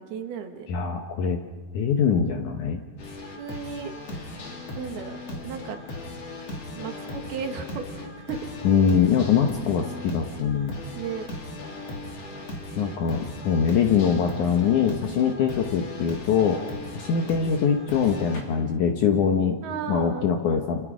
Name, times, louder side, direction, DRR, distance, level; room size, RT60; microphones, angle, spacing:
voice 1, 0.0-0.7 3.4-4.0 4.8-5.2 5.4-5.8 6.8-8.4 11.0-11.3 19.6-20.3, right 7 dB, 70° right, 5 dB, 3.5 m, -34 dB
voice 2, 0.7-1.4 1.7-2.8 8.6-10.7 12.8-16.6 16.9-19.6 19.9-20.8, left 7 dB, 65° left, 4 dB, 2.0 m, -23 dB
sound 1, 3.0-18.4, left 2 dB, 40° left, 3.7 m, -37 dB
29.5 x 27.0 x 5.0 m, 1.4 s
omnidirectional pair, 4.8 m